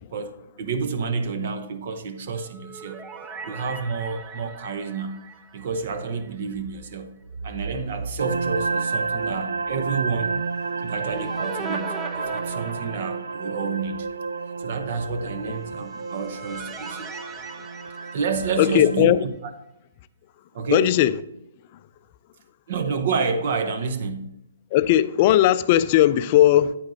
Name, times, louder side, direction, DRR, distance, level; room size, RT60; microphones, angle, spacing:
voice 1, 0.6-3.0 3.4-5.2 5.5-7.1 7.4-10.4 10.8-14.1 14.6-17.1 18.1-19.1 20.5-20.9 22.7-24.3, right 5 dB, 55° right, 0.9 m, -29 dB
sound 1, 2.3-6.6 6.9-7.0 10.5-13.6 15.7-19.1, right 4 dB, 20° right, 0.6 m, -40 dB
sound 2, 8.2-19.0, right 4 dB, 80° right, 0.4 m, -31 dB
voice 2, 18.6-19.2 20.7-21.1 24.7-26.7, left 13 dB, 40° left, 0.3 m, -17 dB
8.9 x 8.8 x 2.7 m
hypercardioid pair, 135°, 0 cm